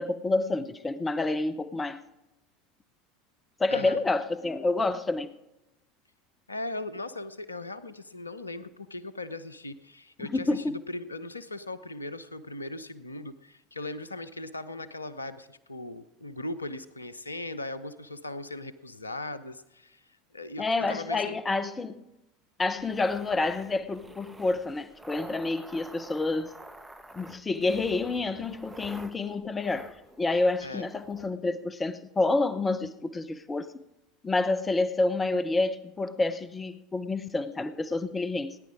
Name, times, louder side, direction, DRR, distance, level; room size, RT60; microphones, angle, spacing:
voice 1, 0.0-2.0 3.6-5.3 10.3-10.8 20.6-22.0 22.6-26.5 27.1-29.9 30.2-33.8 34.2-38.6, left 3 dB, 20° left, 0.9 m, -28 dB
voice 2, 3.7-4.0 6.5-21.4 30.6-30.9, left 2 dB, 85° left, 0.7 m, -39 dB
sound 1, 22.8-31.3, right 1 dB, 5° right, 1.1 m, -48 dB
18.0 x 10.5 x 4.9 m
figure-of-eight pair, 75°, 0 cm